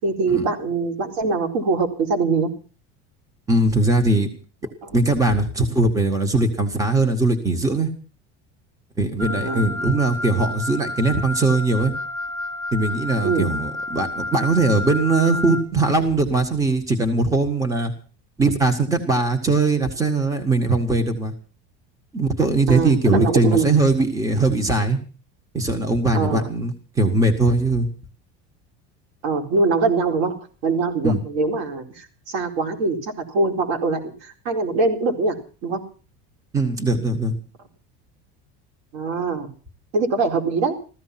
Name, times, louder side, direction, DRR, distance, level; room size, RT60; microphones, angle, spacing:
voice 1, 0.0-2.5 9.4-9.6 13.2-13.4 22.7-23.7 26.1-26.5 29.2-30.4 30.6-35.4 35.6-35.8 38.9-39.5 39.9-40.7, right 3 dB, 80° right, 5 dB, 4.3 m, -23 dB
voice 2, 3.5-4.3 4.9-7.9 9.0-11.9 12.7-17.9 18.4-21.3 22.1-25.0 25.5-27.9 31.0-31.2 36.5-37.3, right 2 dB, 10° right, 7 dB, 1.6 m, -20 dB
Wind instrument woodwind instrument, 9.2-15.6, left 2 dB, 45° right, 2.0 m, -30 dB
15.5 x 14.5 x 5.9 m, 0.38 s
cardioid pair, 180°, 32 cm